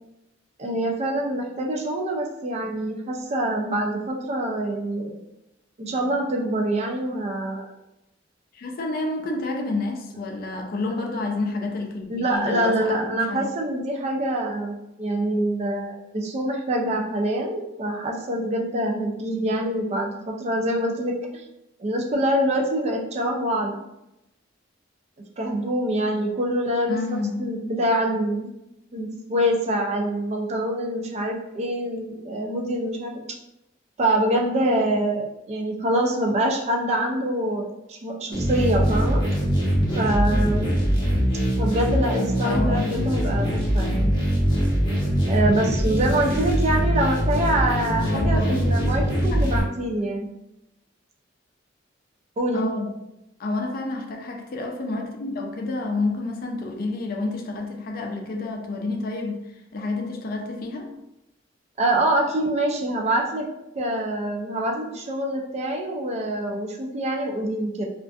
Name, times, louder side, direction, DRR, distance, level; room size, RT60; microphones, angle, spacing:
voice 1, 0.6-5.2 5.8-7.7 12.1-21.4 21.8-23.8 25.4-28.5 28.9-33.3 34.0-39.2 40.0-40.8 41.6-44.1 45.3-50.3 52.4-52.7 61.8-63.4 63.7-67.9, right 1 dB, 35° right, 1 dB, 0.3 m, -25 dB
voice 2, 8.5-13.5 26.9-27.6 42.4-43.0 48.1-49.5 49.9-50.0 52.5-52.9 53.4-59.4 59.7-60.9, left 2 dB, 50° left, 2 dB, 0.4 m, -29 dB
sound 1, 38.3-49.6, equal, 25° left, 0.7 m, -22 dB
2.4 x 2.4 x 2.3 m, 0.88 s
head